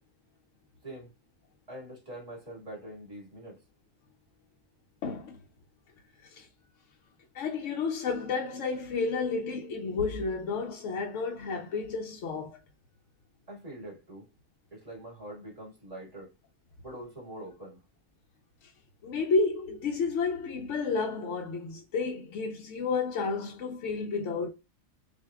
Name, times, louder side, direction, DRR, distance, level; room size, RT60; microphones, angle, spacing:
voice 1, 0.8-1.1 1.7-3.6 13.5-14.3 14.7-16.3 16.8-17.8, right 1 dB, 30° right, 1.8 m, -44 dB
voice 2, 5.0-5.4 6.3-6.5 7.3-12.6 18.6-18.7 19.0-24.5, left 4 dB, 70° left, 0.9 m, -31 dB
6.1 x 2.5 x 2.3 m
omnidirectional pair, 1.4 m